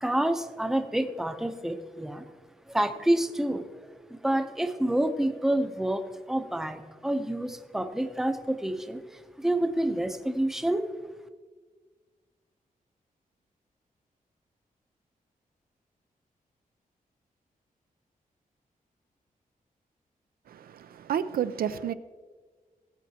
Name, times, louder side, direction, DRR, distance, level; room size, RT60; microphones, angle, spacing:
voice 1, 0.0-2.3 2.7-3.7 4.1-10.9, right 1 dB, 5° right, 0.6 m, -28 dB
voice 2, 20.5-21.9, right 9 dB, 85° right, 0.4 m, -30 dB
18.5 x 8.2 x 2.8 m
wide cardioid pair, 140°, 15 cm